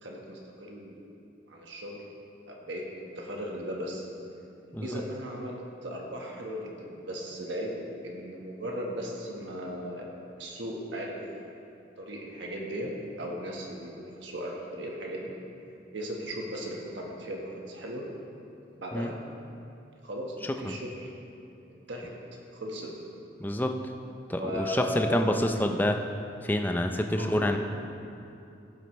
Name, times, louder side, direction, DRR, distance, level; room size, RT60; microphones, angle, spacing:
voice 1, 0.0-1.1 1.5-2.1 2.5-4.0 4.7-10.1 10.4-11.2 12.0-15.3 15.9-18.0 18.7-19.2 20.0-21.1 21.7-22.1 22.5-22.9 24.4-25.4 27.2-27.6, equal, 90° right, -1 dB, 1.3 m, -37 dB
voice 2, 23.4-23.7 24.3-26.0 26.4-27.6, left 1 dB, 10° left, 4 dB, 0.4 m, -27 dB
15.5 x 7.7 x 3.2 m, 2.6 s
head